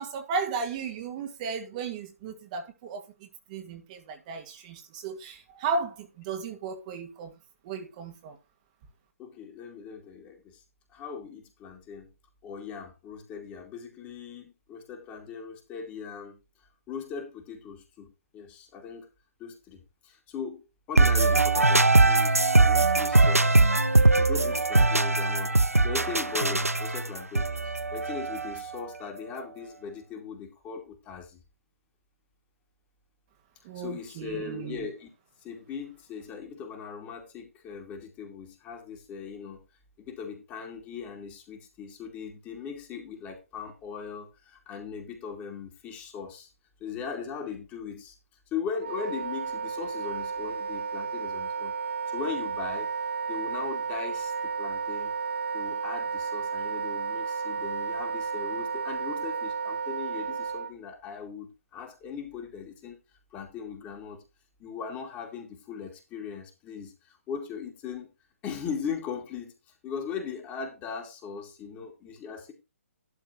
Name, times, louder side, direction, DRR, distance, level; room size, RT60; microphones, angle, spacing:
voice 1, 0.0-3.1 3.5-7.3 7.6-8.4 33.6-34.9, right 5 dB, 30° right, 2.0 m, -34 dB
voice 2, 9.2-10.6 10.9-12.1 12.4-16.4 16.9-19.1 19.4-20.6 20.9-31.4 33.7-35.1 35.4-39.6 40.0-46.5 46.8-48.1 48.5-51.7 52.1-52.9 53.3-55.1 55.5-63.0 63.3-64.2 64.6-68.1 68.4-69.5 69.8-72.5, left 6 dB, 20° left, 2.5 m, -39 dB
sound 1, 21.0-28.8, right 2 dB, 85° right, 0.8 m, -21 dB
Wind instrument woodwind instrument, 48.8-60.7, right 5 dB, 60° right, 3.2 m, -32 dB
12.0 x 4.3 x 6.1 m
figure-of-eight pair, 135°, 8 cm